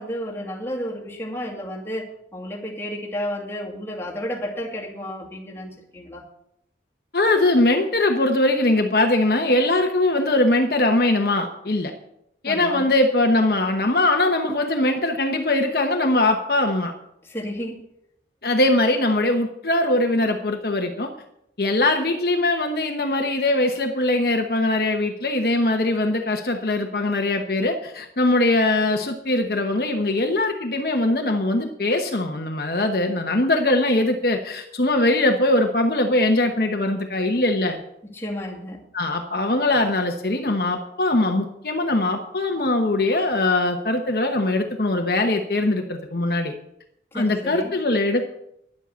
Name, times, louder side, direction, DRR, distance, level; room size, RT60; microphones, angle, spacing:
voice 1, 0.0-6.2 12.5-12.9 17.2-17.8 38.0-38.8 47.1-47.7, equal, 15° left, -4 dB, 2.4 m, -32 dB
voice 2, 7.1-11.9 12.4-16.9 18.4-21.1 21.6-37.8 38.9-46.5 47.1-48.3, left 2 dB, 55° left, 3 dB, 1.0 m, -21 dB
11.0 x 7.6 x 8.2 m, 0.78 s
head